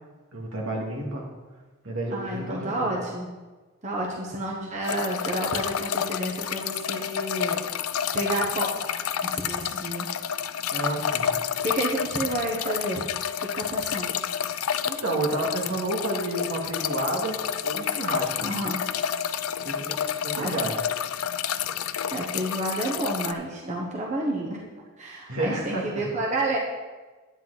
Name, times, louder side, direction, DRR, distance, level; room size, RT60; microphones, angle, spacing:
voice 1, 0.3-1.3 1.8-3.0 10.7-11.3 14.5-17.4 17.6-18.3 19.6-20.8 25.3-26.0, right 2 dB, 75° right, -1 dB, 2.2 m, -30 dB
voice 2, 2.1-3.3 3.8-7.6 8.1-8.7 9.2-10.1 11.6-13.0 13.4-14.1 18.4-18.8 19.5-19.6 20.4-20.6 22.1-24.7 25.0-26.6, right 1 dB, 35° right, -2 dB, 1.1 m, -30 dB
sound 1, 4.8-23.3, left 8 dB, 80° left, 0.5 m, -30 dB
10.5 x 9.2 x 4.1 m, 1.3 s
head